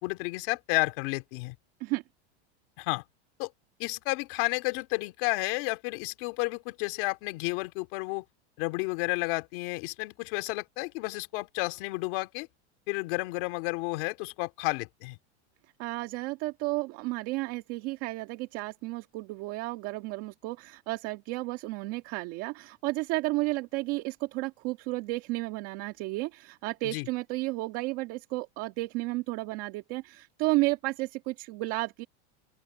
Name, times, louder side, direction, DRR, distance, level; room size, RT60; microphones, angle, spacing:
voice 1, 0.0-1.5 2.8-3.0 3.4-3.5 3.8-8.2 8.6-12.5 12.9-15.2 26.8-27.1, left 26 dB, 50° left, 3.2 m, -31 dB
voice 2, 15.8-32.1, right 22 dB, 45° right, 1.8 m, -32 dB
open air
supercardioid pair, 165°, 34 cm